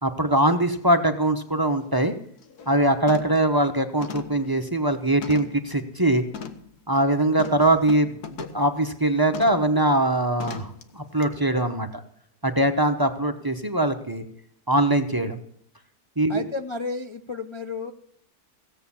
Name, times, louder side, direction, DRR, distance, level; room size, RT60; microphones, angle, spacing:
voice 1, 0.0-2.1 2.7-6.2 6.9-11.9 12.4-14.2 14.7-15.4 16.2-16.5, right 1 dB, 20° right, 8 dB, 0.7 m, -22 dB
sound 1, 1.3-1.4 1.8-2.1 2.4-2.7 3.1-3.5 4.0-5.7 6.3-6.7 7.4-8.7 9.3-9.7 10.4-10.8 11.2-11.3, left 6 dB, 70° left, 1.6 m, -38 dB
voice 2, 16.3-17.9, left 3 dB, 50° left, 4 dB, 0.3 m, -32 dB
16.5 x 7.9 x 7.1 m, 0.67 s
omnidirectional pair, 1.8 m